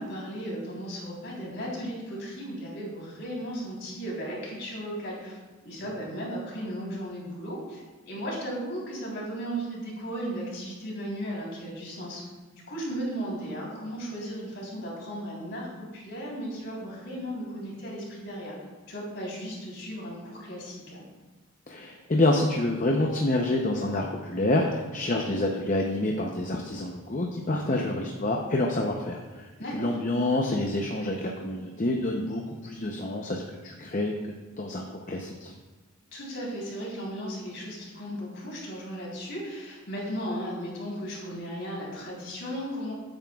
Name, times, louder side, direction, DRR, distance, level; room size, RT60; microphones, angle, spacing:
voice 1, 0.0-5.4 5.6-12.2 12.7-15.7 15.9-18.5 18.9-21.0 27.6-27.9 29.6-29.7 36.1-42.9, equal, 55° left, -4 dB, 3.7 m, -36 dB
voice 2, 21.7-34.1 34.6-35.5, left 2 dB, 35° left, 1 dB, 0.7 m, -27 dB
15.0 x 8.9 x 2.4 m, 1.2 s
head